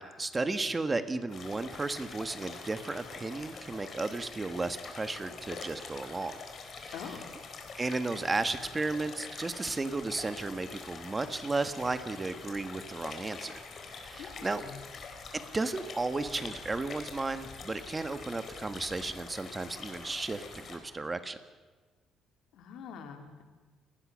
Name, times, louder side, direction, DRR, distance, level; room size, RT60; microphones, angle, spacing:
voice 1, 0.0-6.3 6.8-7.2 7.8-13.5 14.0-14.6 15.3-21.4, right 3 dB, 20° right, 10 dB, 1.5 m, -34 dB
sound 1, 1.3-20.8, left 4 dB, 40° left, 4.2 m, -45 dB
voice 2, 6.9-7.3 14.2-14.8 22.5-23.4, left 7 dB, 70° left, 5 dB, 3.4 m, -44 dB
29.5 x 19.0 x 6.4 m, 1.4 s
cardioid pair, 135°, 0 cm